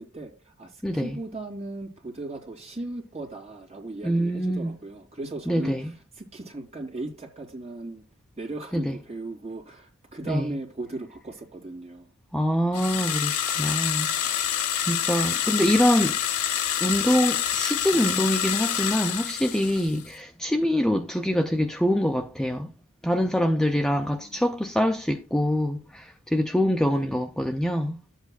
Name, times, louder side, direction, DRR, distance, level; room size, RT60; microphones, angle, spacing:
voice 1, 0.0-8.0 8.4-12.1 15.5-15.6 24.0-24.4 26.9-27.2, right 2 dB, 30° right, 2.9 m, -37 dB
voice 2, 0.8-1.2 4.0-4.7 5.5-5.9 8.7-8.9 10.3-10.5 12.3-16.2 16.8-22.7 23.0-28.0, equal, 5° left, 0.4 m, -25 dB
sound 1, 12.7-20.1, left 10 dB, 90° left, 0.7 m, -27 dB
12.0 x 8.1 x 2.4 m
head